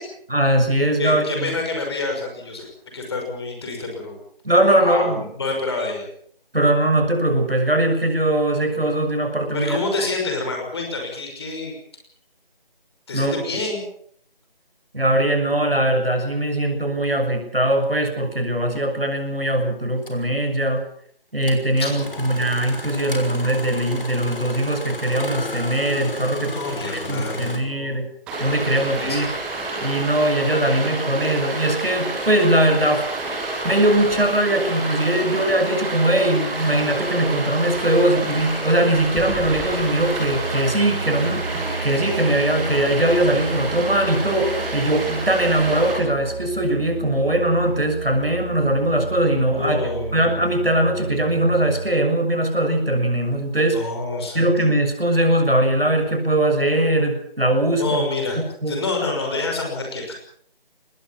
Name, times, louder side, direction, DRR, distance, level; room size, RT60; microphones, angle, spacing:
voice 1, 0.3-1.5 4.4-5.3 6.5-9.8 13.1-13.3 14.9-20.8 21.3-26.6 26.9-28.1 28.4-29.3 29.8-33.1 33.6-41.4 41.8-49.8 50.1-53.9 54.3-58.0 58.6-58.8, right 1 dB, 75° right, 6 dB, 6.8 m, -20 dB
voice 2, 1.0-4.2 4.8-6.1 9.5-11.7 13.1-13.8 21.7-22.5 26.5-28.1 28.7-29.4 49.4-50.3 53.7-54.5 57.8-60.2, left 3 dB, 25° left, 2 dB, 5.9 m, -28 dB
Engine starting, 18.8-18.9 20.0-20.2 21.4-27.6, left 1 dB, 65° left, 6.2 m, -33 dB
Stream, 28.3-45.9, right 2 dB, 5° right, 1.4 m, -29 dB
Musical instrument, 40.1-52.0, right 3 dB, 20° right, 2.7 m, -33 dB
24.5 x 20.5 x 5.9 m, 0.64 s
figure-of-eight pair, 160°, 29 cm